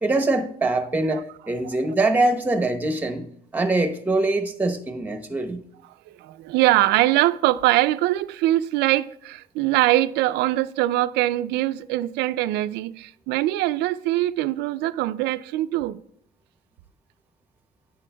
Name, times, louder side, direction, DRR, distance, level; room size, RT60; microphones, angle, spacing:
voice 1, 0.0-3.3 3.5-5.6, right 2 dB, 10° right, 0.9 m, -23 dB
voice 2, 6.2-16.0, right 16 dB, 85° right, 0.4 m, -22 dB
9.9 x 8.6 x 2.2 m
cardioid pair, 110°, 17 cm